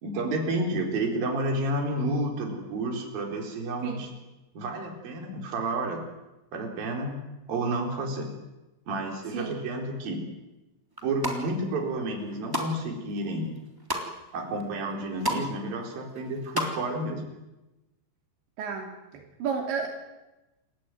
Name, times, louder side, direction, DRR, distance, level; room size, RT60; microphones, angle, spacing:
voice 1, 0.0-4.1 4.5-6.0 6.5-7.1 7.5-8.3 8.9-10.2 11.0-13.5 14.3-17.2, right 2 dB, 55° right, 2 dB, 5.8 m, -30 dB
sound 1, 10.9-11.4 12.0-12.7 13.1-14.1 14.6-14.7 14.9-15.5 15.7-16.7 17.0-17.1, equal, 5° right, 2.7 m, -31 dB
voice 2, 18.6-19.9, right 5 dB, 85° right, 2 dB, 5.1 m, -32 dB
28.5 x 15.5 x 9.4 m, 1.0 s
omnidirectional pair, 5.0 m